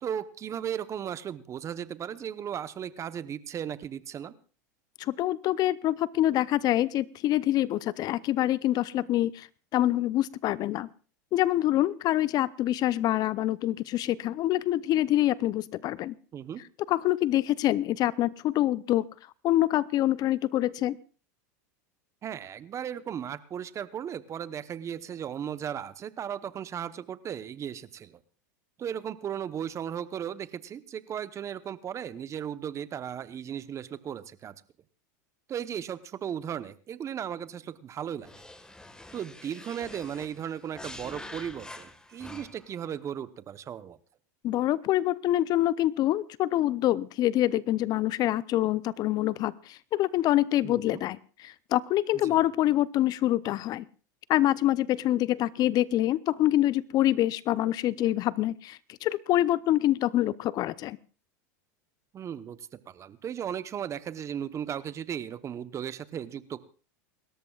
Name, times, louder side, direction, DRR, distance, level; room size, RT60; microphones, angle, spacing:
voice 1, 0.0-4.3 16.3-16.6 22.2-28.2 28.8-34.5 35.5-38.3 39.1-44.0 50.6-51.0 52.2-52.4 62.1-66.7, right 9 dB, 30° right, 14 dB, 0.9 m, -36 dB
voice 2, 5.0-10.9 11.3-16.1 16.9-19.0 19.4-21.0 44.4-53.8 54.3-61.0, left 14 dB, 45° left, 19 dB, 0.6 m, -26 dB
sound 1, 38.2-42.8, left 2 dB, 10° left, 1.6 m, -46 dB
28.5 x 13.5 x 2.4 m, 0.38 s
hypercardioid pair, 100°, 10 cm